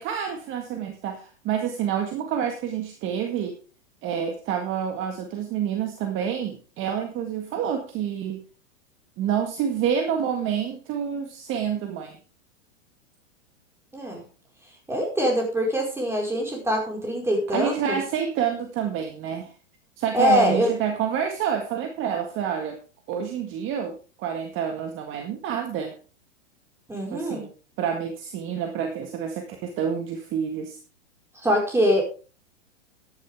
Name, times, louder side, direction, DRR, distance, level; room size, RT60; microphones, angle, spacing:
voice 1, 0.0-3.6 4.0-8.4 9.2-12.2 17.5-19.5 20.0-22.8 23.1-25.9 27.1-27.5 27.8-30.8, right 8 dB, 30° right, 4 dB, 1.8 m, -28 dB
voice 2, 14.9-18.0 20.1-20.7 26.9-27.5 31.4-32.0, equal, 5° right, 0 dB, 4.9 m, -23 dB
13.5 x 11.0 x 3.6 m, 0.35 s
hypercardioid pair, 130°, 38 cm